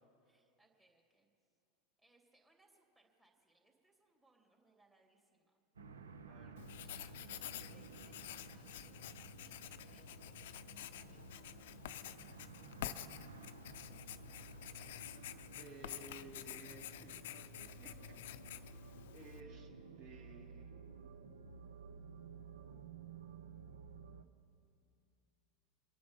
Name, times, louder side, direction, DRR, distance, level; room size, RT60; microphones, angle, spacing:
voice 1, 0.2-1.3 2.0-5.6 6.8-7.2 7.6-11.7 12.1-12.6, right 2 dB, 20° right, -1 dB, 2.9 m, -72 dB
sound 1, 5.8-24.2, right 5 dB, 85° right, 0.7 m, -54 dB
voice 2, 6.2-6.6 15.6-18.2 19.1-19.7 20.0-20.7, right 3 dB, 50° right, 0 dB, 3.3 m, -56 dB
Writing, 6.6-19.4, left 12 dB, 70° left, 0.5 m, -49 dB
25.5 x 9.4 x 5.3 m, 2.5 s
hypercardioid pair, 90°, 0 cm